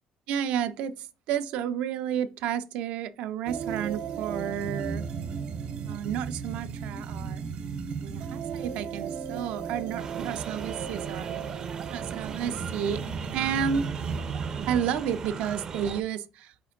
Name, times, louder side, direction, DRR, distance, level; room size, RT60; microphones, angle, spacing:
voice 1, 0.3-5.0 5.8-7.4 8.0-11.4 11.9-13.0 13.3-13.9 14.7-16.5, right 8 dB, 85° right, 0.5 m, -31 dB
sound 1, 3.5-15.0, right 6 dB, 65° right, 0.9 m, -35 dB
sound 2, 10.0-16.0, right 6 dB, 30° right, 0.4 m, -38 dB
5.3 x 2.5 x 3.7 m
cardioid pair, 160°, 2 cm